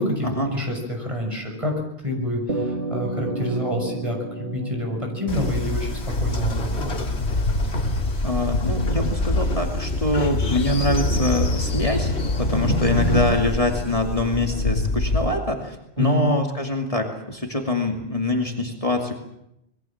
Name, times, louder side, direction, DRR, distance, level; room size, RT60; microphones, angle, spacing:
voice 1, 0.0-1.7 2.0-7.0 16.0-16.3, left 1 dB, 30° right, 2 dB, 6.5 m, -27 dB
sound 1, 2.5-7.1, right 2 dB, 60° right, 2.0 m, -32 dB
Train, 5.3-15.3, left 2 dB, 90° left, 2.4 m, -24 dB
voice 2, 8.2-12.1 12.4-19.2, left 1 dB, 35° left, 2 dB, 2.7 m, -24 dB
26.0 x 22.0 x 7.3 m, 0.80 s
omnidirectional pair, 1.1 m